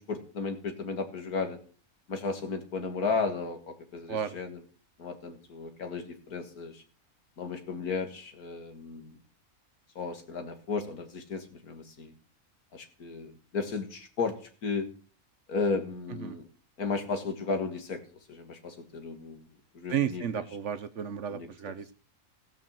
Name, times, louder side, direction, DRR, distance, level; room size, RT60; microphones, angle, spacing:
voice 1, 0.0-1.6 2.1-4.6 5.0-6.8 7.4-9.2 10.0-12.1 12.7-14.9 15.5-16.5 16.8-18.0 18.3-19.5 19.7-20.5 21.3-21.7, left 4 dB, 75° left, 7 dB, 2.3 m, -34 dB
voice 2, 19.9-21.9, right 9 dB, 60° right, 13 dB, 1.0 m, -32 dB
16.0 x 5.5 x 7.5 m, 0.42 s
omnidirectional pair, 1.6 m